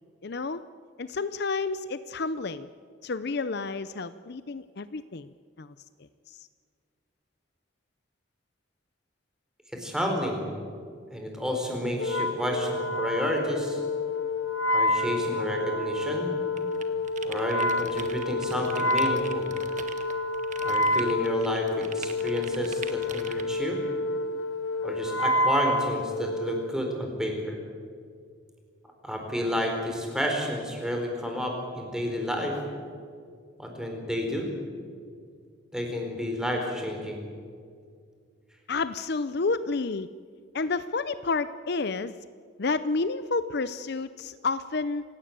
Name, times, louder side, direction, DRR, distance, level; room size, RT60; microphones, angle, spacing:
voice 1, 0.2-0.6 1.0-2.7 3.0-5.7 6.3-6.5 38.7-40.1 40.5-42.1 42.6-45.0, left 4 dB, 55° left, 13 dB, 0.6 m, -30 dB
voice 2, 9.7-10.5 11.1-13.8 14.7-16.4 17.2-19.5 20.6-23.8 24.8-27.6 29.0-32.6 33.6-34.5 35.7-37.2, equal, 5° right, 2 dB, 4.5 m, -30 dB
Wind instrument woodwind instrument, 12.0-26.7, left 1 dB, 75° left, 1.8 m, -28 dB
sound 1, 16.6-23.4, right 6 dB, 40° right, 1.5 m, -42 dB
27.5 x 17.0 x 8.9 m, 2.1 s
head